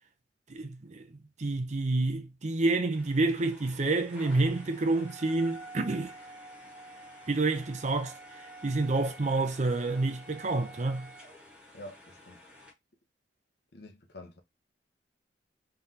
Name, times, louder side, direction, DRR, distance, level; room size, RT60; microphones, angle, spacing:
voice 1, 0.5-1.1 1.4-6.1 7.3-8.1 8.6-11.1, right 2 dB, 40° right, 0.6 m, -28 dB
sound 1, 2.9-12.7, right 1 dB, 5° right, 1.7 m, -49 dB
voice 2, 11.7-12.4 13.7-14.4, left 1 dB, 65° left, 0.9 m, -47 dB
3.8 x 3.3 x 2.8 m
head